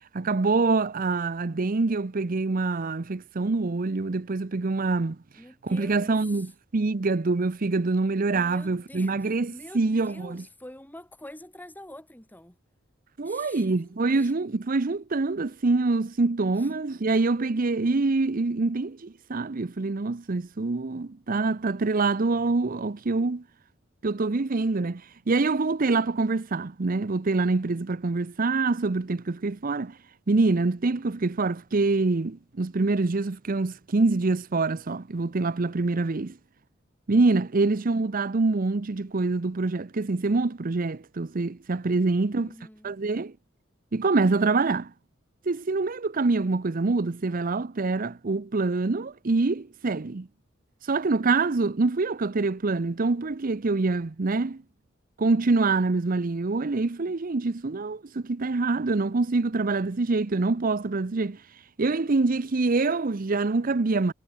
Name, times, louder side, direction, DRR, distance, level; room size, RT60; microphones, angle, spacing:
voice 1, 0.1-5.2 5.6-10.4 13.2-23.4 24.0-30.0 30.3-36.3 37.1-42.5 42.8-43.3 43.9-44.9 45.5-50.3 50.8-54.6 55.2-61.4 61.8-64.1, right 3 dB, 45° right, 0.7 m, -25 dB
voice 2, 5.4-6.5 8.3-12.6 13.2-14.5 16.6-16.7 36.2-36.3 37.6-37.9 42.3-43.0, left 1 dB, 10° left, 3.8 m, -47 dB
head